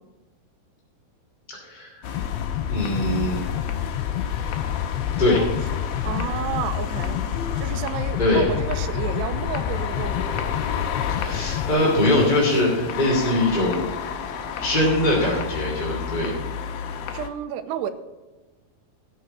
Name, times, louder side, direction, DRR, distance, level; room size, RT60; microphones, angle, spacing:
voice 1, 1.5-2.2 2.7-3.4 5.2-5.4 8.2-8.5 11.1-13.8 14.6-16.3, left 1 dB, 15° left, -4 dB, 2.0 m, -22 dB
sound 1, 2.0-17.3, left 6 dB, 70° left, 2.7 m, -32 dB
sound 2, 2.2-11.7, left 11 dB, 90° left, 2.7 m, -28 dB
voice 2, 6.1-7.2 7.6-10.4 17.1-17.9, right 9 dB, 90° right, 11 dB, 2.8 m, -31 dB
13.5 x 6.6 x 6.9 m, 1.2 s
omnidirectional pair, 4.8 m